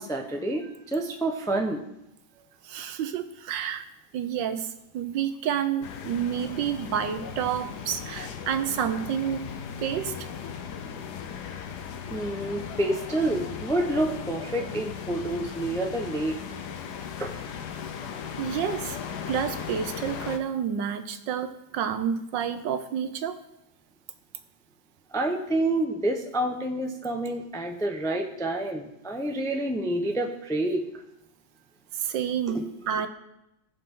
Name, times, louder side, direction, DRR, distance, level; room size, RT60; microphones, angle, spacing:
voice 1, 0.0-1.8 12.1-16.4 17.2-17.3 25.1-30.9 32.5-32.6, right 1 dB, 5° left, 3 dB, 0.5 m, -28 dB
voice 2, 2.6-3.8 4.1-9.5 9.8-10.3 18.4-19.0 19.3-23.4 31.9-33.1, right 8 dB, 75° right, 9 dB, 1.5 m, -29 dB
sound 1, 5.8-20.4, left 7 dB, 65° left, 1.3 m, -37 dB
19.5 x 6.6 x 3.8 m, 0.86 s
omnidirectional pair, 2.0 m